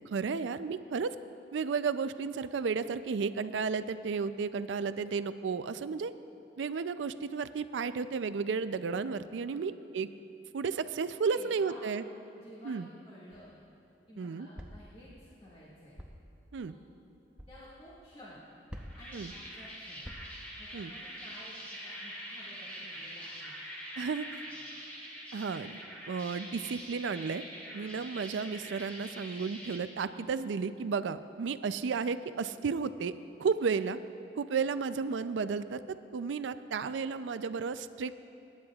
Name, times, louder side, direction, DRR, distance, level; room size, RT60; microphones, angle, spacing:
voice 1, 0.1-1.2 1.5-6.1 6.6-10.1 10.5-12.0 12.6-12.9 14.2-14.5 16.5-16.7 19.1-19.3 20.7-20.9 24.0-24.4 25.3-25.8 26.1-27.4 27.7-33.1 33.4-34.0 34.4-38.2, right 5 dB, 85° right, 13 dB, 0.4 m, -33 dB
voice 2, 9.5-10.0 10.9-11.8 12.4-13.6 14.1-16.0 17.5-18.4 19.0-20.1 20.6-23.5 24.2-24.3 24.6-24.7, equal, 30° left, -9 dB, 1.8 m, -53 dB
sound 1, 13.3-13.7 14.6-14.9 16.0-16.3 17.4-17.6 18.7-19.2 20.0-20.5, equal, 5° right, 0.6 m, -46 dB
sound 2, 18.7-29.8, equal, 10° left, 2.0 m, -44 dB
24.0 x 10.5 x 2.4 m, 2.7 s
head